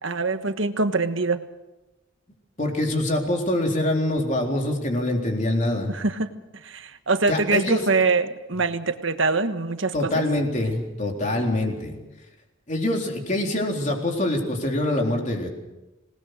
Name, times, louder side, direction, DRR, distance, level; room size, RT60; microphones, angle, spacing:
voice 1, 0.0-1.4 5.9-6.3 6.6-10.2 11.3-11.5, right 3 dB, 70° right, 9 dB, 1.4 m, -24 dB
voice 2, 2.6-5.9 7.3-7.8 9.9-12.0 12.7-15.5, left 1 dB, 35° left, 1 dB, 3.8 m, -24 dB
26.5 x 19.0 x 6.7 m, 1.0 s
head